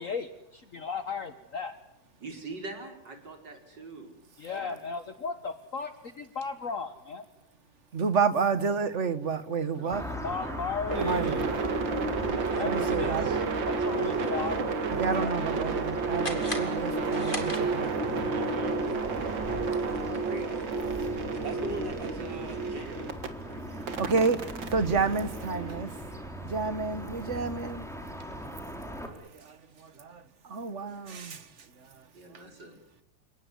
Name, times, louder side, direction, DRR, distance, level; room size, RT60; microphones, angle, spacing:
voice 1, 0.0-1.7 4.4-7.2 10.2-11.4 12.6-14.7, left 4 dB, 50° left, 1.5 m, -35 dB
voice 2, 2.2-4.1 4.5-4.8 9.8-10.7 12.4-12.8 15.2-15.5 18.3-18.8 19.8-21.1 21.4-23.2 23.5-23.7 25.4-26.2 32.1-32.8, right 2 dB, 70° right, 5.5 m, -42 dB
voice 3, 7.9-10.0 11.0-11.5 12.6-13.7 14.0-14.1 14.9-18.0 23.8-24.4 24.7-25.9 26.4-27.9 29.1-31.5 31.8-32.0, right 5 dB, 40° right, 1.7 m, -30 dB
sound 1, 9.9-29.1, equal, ahead, 3.5 m, -40 dB
sound 2, 10.9-23.3 23.9-26.0, right 4 dB, 85° right, 2.7 m, -31 dB
sound 3, 16.2-18.1, left 2 dB, 25° left, 3.1 m, -38 dB
29.5 x 18.0 x 9.8 m
omnidirectional pair, 2.0 m